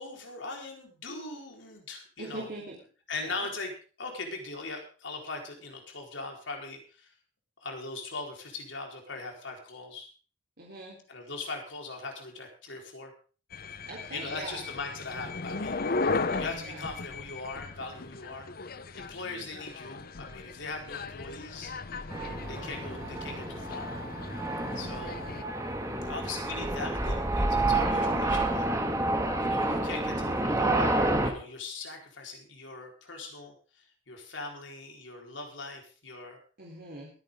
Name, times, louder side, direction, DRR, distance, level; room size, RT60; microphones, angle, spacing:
voice 1, 0.0-2.5 3.1-3.7 4.0-7.1 7.6-10.1 11.1-13.1 14.1-15.8 16.4-21.7 22.4-23.9 24.7-25.2 26.0-28.7 29.4-30.9 31.2-36.4, left 3 dB, 80° left, 1 dB, 4.4 m, -40 dB
voice 2, 2.2-2.8 3.2-3.5 10.6-11.0 13.9-14.6 16.1-16.8 27.8-28.2 36.6-37.1, right 2 dB, 55° right, -3 dB, 3.7 m, -42 dB
sound 1, 13.5-25.4, left 3 dB, 50° left, 0.8 m, -37 dB
sound 2, 22.1-31.3, right 2 dB, 15° right, 2.1 m, -29 dB
22.5 x 9.6 x 3.7 m, 0.38 s
head